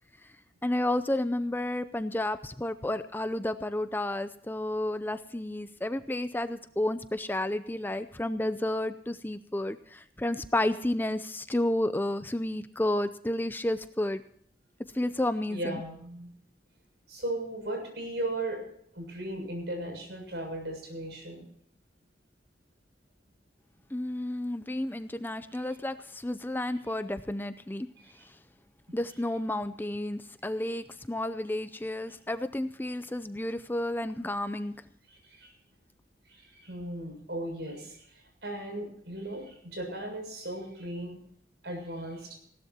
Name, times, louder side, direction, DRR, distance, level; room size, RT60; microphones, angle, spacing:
voice 1, 0.6-14.2 14.9-15.8 23.9-27.9 28.9-34.7, left 1 dB, 10° left, 12 dB, 0.5 m, -31 dB
voice 2, 15.5-16.3 17.1-18.6 18.9-21.4 28.0-28.3 35.1-35.5 36.3-41.2 41.6-42.4, right 1 dB, 70° right, 3 dB, 7.0 m, -37 dB
19.5 x 17.0 x 2.8 m, 0.65 s
head